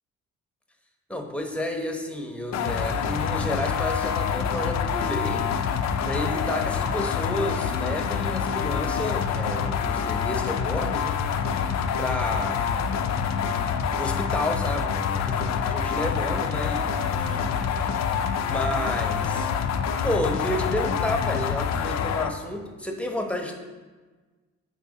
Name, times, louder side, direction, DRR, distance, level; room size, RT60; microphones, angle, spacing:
voice 1, 1.1-5.4 6.0-11.2 12.0-12.6 13.9-17.5 18.4-19.5 20.0-23.6, left 1 dB, 5° left, 3 dB, 0.9 m, -31 dB
sound 1, 2.5-22.3, left 7 dB, 65° left, 0.5 m, -26 dB
7.5 x 4.5 x 4.0 m, 1.3 s
cardioid pair, 90°, 30 cm